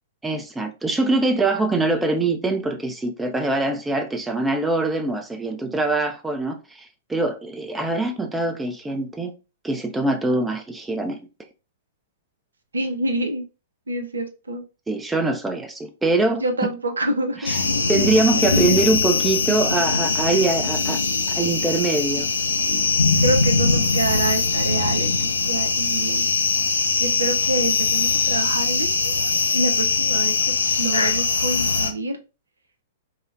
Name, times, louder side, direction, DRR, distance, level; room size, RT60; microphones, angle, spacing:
voice 1, 0.2-9.3 9.6-11.2 14.9-16.7 17.4-17.6 17.9-21.0 21.3-22.3, right 2 dB, 10° right, 0.4 m, -23 dB
voice 2, 12.7-13.4 13.9-14.6 16.4-17.5 18.3-18.4 20.2-20.4 23.2-26.3 27.0-29.1 29.5-30.3 30.8-32.1, right 2 dB, 80° right, 0.5 m, -27 dB
sound 1, 17.4-31.9, left 4 dB, 80° left, 0.4 m, -21 dB
3.8 x 2.1 x 2.4 m
figure-of-eight pair, 110°, 0 cm